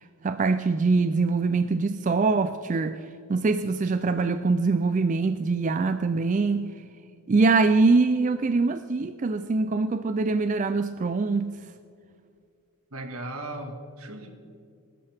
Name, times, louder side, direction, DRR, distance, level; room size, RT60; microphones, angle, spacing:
voice 1, 0.2-3.0 3.3-6.7 7.3-11.5, right 3 dB, 35° right, 0.3 m, -23 dB
voice 2, 12.9-14.4, right 2 dB, 75° right, 1.8 m, -37 dB
22.0 x 12.5 x 3.5 m
head